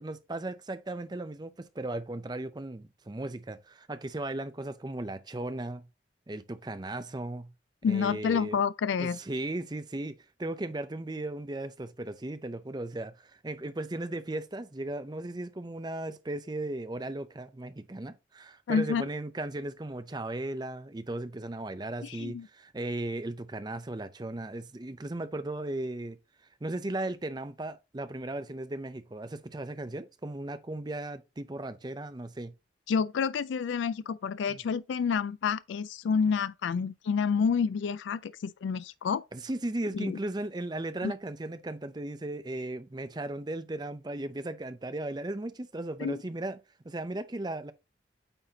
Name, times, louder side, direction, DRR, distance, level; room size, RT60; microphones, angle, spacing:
voice 1, 0.0-5.9 6.3-7.5 7.9-8.6 9.0-26.2 26.6-32.5 34.5-34.6 39.3-46.6 46.8-47.7, right 2 dB, 25° right, 0.5 m, -36 dB
voice 2, 7.8-9.2 18.7-19.1 22.0-22.5 32.9-39.2 39.9-40.2 41.0-41.1 46.0-46.2, left 6 dB, 85° left, 0.3 m, -29 dB
8.9 x 4.2 x 2.8 m
head